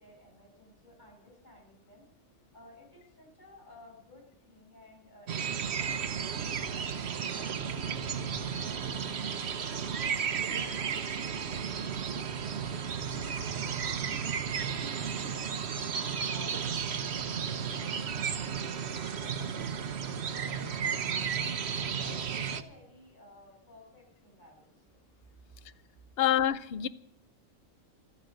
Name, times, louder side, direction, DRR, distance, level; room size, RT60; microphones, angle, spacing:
voice 1, 0.0-2.1 2.5-8.2 8.6-13.8 14.1-15.9 16.2-21.6 22.0-25.0, left 1 dB, 35° left, -2 dB, 7.1 m, -56 dB
sound 1, 5.3-22.6, right 7 dB, 55° right, 1.1 m, -33 dB
voice 2, 26.2-26.9, left 11 dB, 55° left, 14 dB, 0.8 m, -26 dB
15.0 x 13.5 x 6.5 m, 0.75 s
omnidirectional pair, 1.4 m